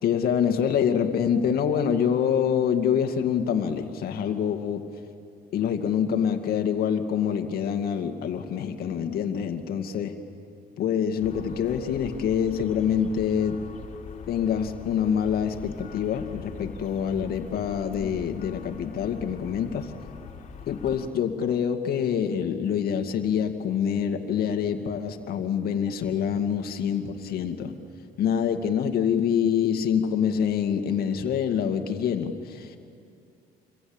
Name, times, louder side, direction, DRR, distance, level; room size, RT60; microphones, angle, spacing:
voice 1, 0.0-4.8 5.5-10.1 10.8-13.6 14.3-19.9 20.7-27.8 28.2-32.8, left 8 dB, 65° left, 6 dB, 2.3 m, -26 dB
sound 1, 11.2-21.1, left 6 dB, 45° left, 3.4 m, -42 dB
28.0 x 23.0 x 8.9 m, 2.5 s
cardioid pair, 110°, 17 cm